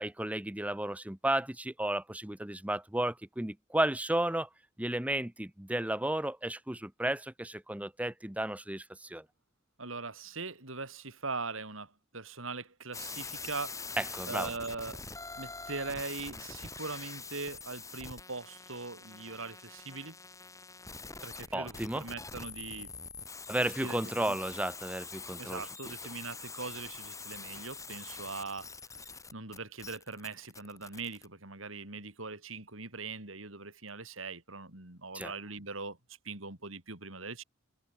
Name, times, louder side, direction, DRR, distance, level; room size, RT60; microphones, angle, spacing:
voice 1, 0.0-4.5 4.8-9.2 14.0-14.5 21.5-22.1 23.5-25.6 35.1-35.3, right 1 dB, 5° right, 0.8 m, -33 dB
voice 2, 9.8-13.8 14.3-15.0 15.4-20.2 21.2-22.9 23.6-24.4 25.4-36.0 36.2-37.4, right 3 dB, 80° right, 4.7 m, -41 dB
sound 1, 12.9-31.3, left 4 dB, 15° left, 6.4 m, -45 dB
head